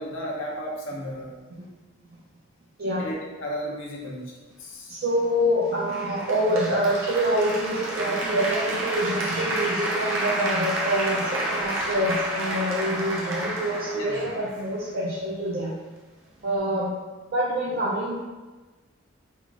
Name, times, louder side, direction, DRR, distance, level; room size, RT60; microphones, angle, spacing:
voice 1, 0.0-1.4 3.0-4.3 4.6-5.0 13.9-14.4, equal, 70° left, -2 dB, 0.8 m, -34 dB
voice 2, 4.9-15.7 16.4-16.9 17.3-18.2, equal, 50° right, -6 dB, 0.5 m, -26 dB
Applause, 5.9-14.9, right 1 dB, 90° right, 0.8 m, -30 dB
3.6 x 2.4 x 3.5 m, 1.2 s
head